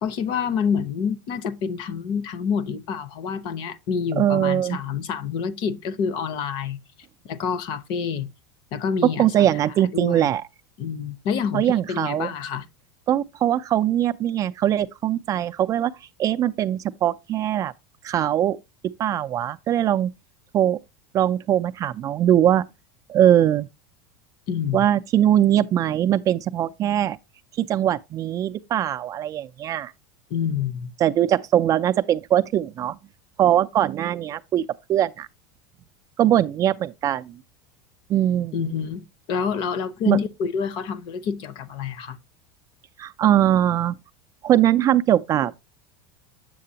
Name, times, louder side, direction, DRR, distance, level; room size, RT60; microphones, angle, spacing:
voice 1, 0.0-6.8 7.2-8.3 8.7-9.5 9.9-10.3 10.8-12.7 24.5-24.9 30.3-30.9 38.5-39.0 39.3-42.2, left 6 dB, 50° left, 0.7 m, -27 dB
voice 2, 4.2-4.8 9.2-10.4 11.5-12.3 13.1-15.9 16.2-17.7 18.0-18.6 19.0-20.1 20.5-20.8 21.1-22.6 23.1-23.7 24.7-27.2 27.6-29.9 31.0-33.0 33.4-34.6 34.9-35.3 36.2-37.4 38.1-38.5 40.1-40.2 43.0-44.0 44.4-45.5, right 11 dB, 30° right, 0.3 m, -21 dB
7.7 x 6.6 x 2.7 m
supercardioid pair, 140°, 11 cm